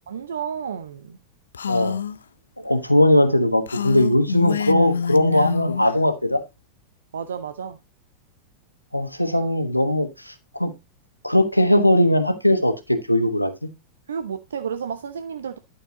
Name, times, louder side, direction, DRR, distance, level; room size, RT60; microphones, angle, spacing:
voice 1, 0.1-1.2 7.1-7.8 14.1-15.6, right 7 dB, 65° right, 0.7 m, -31 dB
Female speech woman speaking, 1.5-2.2 3.7-5.9, left 7 dB, 70° left, 0.4 m, -26 dB
voice 2, 1.7-2.0 2.6-6.4 8.9-10.7 11.2-13.7, left 1 dB, 90° left, 1.2 m, -19 dB
11.5 x 6.6 x 2.7 m
figure-of-eight pair, 90°, 0 cm